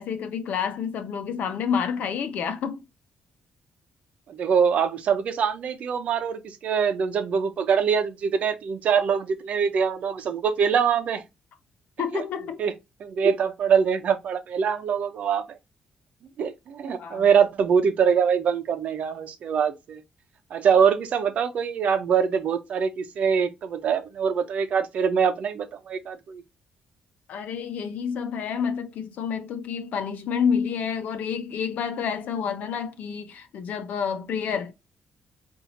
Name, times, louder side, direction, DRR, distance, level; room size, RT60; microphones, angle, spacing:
voice 1, 0.0-2.8 12.0-12.6 17.0-17.2 27.3-34.7, left 7 dB, 70° left, 0.8 m, -29 dB
voice 2, 4.3-11.2 12.1-12.2 12.6-12.7 13.0-15.6 16.4-20.0 20.5-26.4, right 7 dB, 55° right, 0.8 m, -23 dB
5.2 x 2.7 x 2.8 m
cardioid pair, 160°, 3 cm